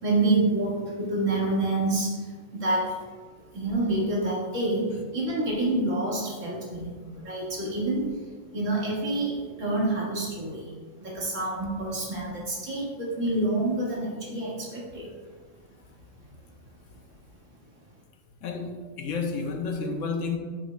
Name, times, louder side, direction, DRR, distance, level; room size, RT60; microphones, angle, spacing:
voice 1, 0.0-2.9 3.5-8.0 8.5-10.7 11.0-15.1, right 2 dB, 65° right, -5 dB, 2.2 m, -27 dB
voice 2, 18.4-20.4, left 4 dB, 70° left, 3 dB, 1.1 m, -31 dB
10.5 x 5.8 x 2.2 m, 1.5 s
omnidirectional pair, 1.4 m